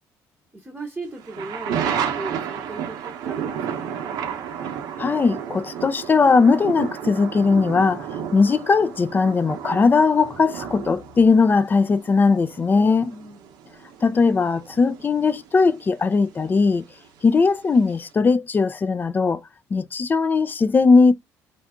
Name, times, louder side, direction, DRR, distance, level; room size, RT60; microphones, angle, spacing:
voice 1, 0.5-4.1 12.7-13.4, right 2 dB, 15° right, 0.8 m, -37 dB
sound 1, 1.2-16.8 17.0-17.1, right 8 dB, 75° right, 0.6 m, -32 dB
voice 2, 5.0-13.1 14.0-16.9 17.2-19.4 19.7-21.1, left 4 dB, 30° left, 0.3 m, -19 dB
2.6 x 2.4 x 3.4 m
supercardioid pair, 80°, 7 cm